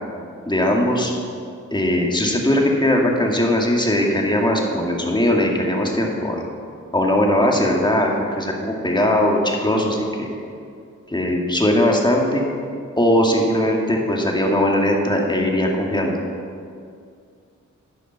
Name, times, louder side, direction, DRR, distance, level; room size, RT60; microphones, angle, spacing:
voice 1, 0.5-1.1 1.7-6.4 6.9-10.3 11.1-12.4 13.0-16.2, left 1 dB, 15° left, 0 dB, 2.2 m, -19 dB
11.5 x 5.1 x 8.2 m, 2.3 s
cardioid pair, 55°, 31 cm